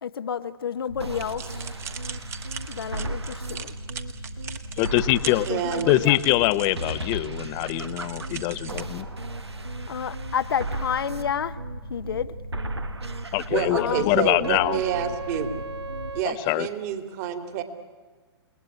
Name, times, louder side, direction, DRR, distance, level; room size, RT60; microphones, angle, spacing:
voice 1, 0.0-1.7 2.7-3.7 5.2-6.2 9.9-11.6 11.9-12.3 13.7-14.1, left 8 dB, 60° left, 11 dB, 0.9 m, -30 dB
sound 1, 0.9-16.2, right 1 dB, 80° right, 1.8 m, -34 dB
sound 2, 1.1-8.8, right 7 dB, 20° right, 1.4 m, -41 dB
voice 2, 4.8-5.5 5.9-9.1 13.3-14.8 16.2-16.7, left 17 dB, 30° left, 15 dB, 0.9 m, -23 dB
voice 3, 5.5-5.9 13.5-15.5 16.1-17.6, right 9 dB, 35° right, 8 dB, 2.7 m, -28 dB
29.5 x 19.0 x 9.9 m, 1.5 s
figure-of-eight pair, 120°, 14 cm